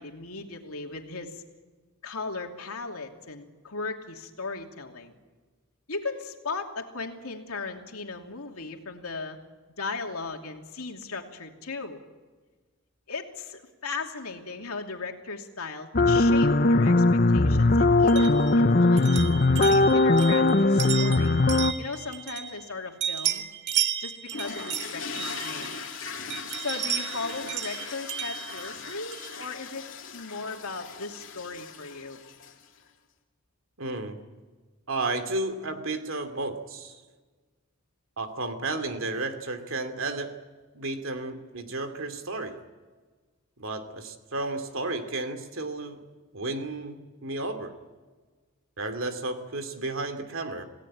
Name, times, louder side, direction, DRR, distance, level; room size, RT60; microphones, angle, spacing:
voice 1, 0.0-1.4 2.0-5.1 5.9-9.4 9.8-12.0 13.1-19.1 19.6-21.4 21.8-23.4 24.0-25.7 26.6-29.8 30.1-32.2, left 4 dB, 85° left, 3 dB, 2.8 m, -37 dB
sound 1, 15.9-21.7, left 2 dB, 40° left, 0.7 m, -20 dB
sound 2, 18.1-22.7 23.0-25.9 26.3-29.4, right 10 dB, 55° right, 1.9 m, -33 dB
sound 3, 24.3-32.8, left 5 dB, 60° left, 3.0 m, -39 dB
voice 2, 33.8-34.2 34.9-37.0 38.2-40.4 40.7-42.6 43.6-46.0 46.3-47.8 48.8-50.6, right 2 dB, 70° right, 8 dB, 2.6 m, -32 dB
28.0 x 17.5 x 8.8 m, 1.4 s
head